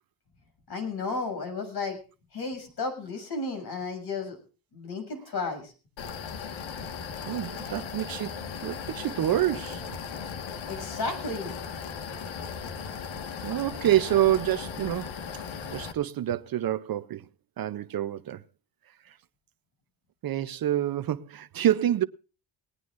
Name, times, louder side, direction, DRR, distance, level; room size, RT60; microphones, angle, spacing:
voice 1, 0.7-2.0 2.3-4.4 4.7-5.7 10.7-11.5, left 3 dB, 55° left, 7.1 m, -33 dB
sound 1, 6.0-15.9, left 6 dB, 75° left, 1.7 m, -37 dB
voice 2, 7.3-9.8 13.4-15.4 15.7-17.3 17.6-18.4 19.1-19.2 20.2-22.0, right 12 dB, 50° right, 0.6 m, -27 dB
19.5 x 19.0 x 2.5 m
cardioid pair, 150°, 47 cm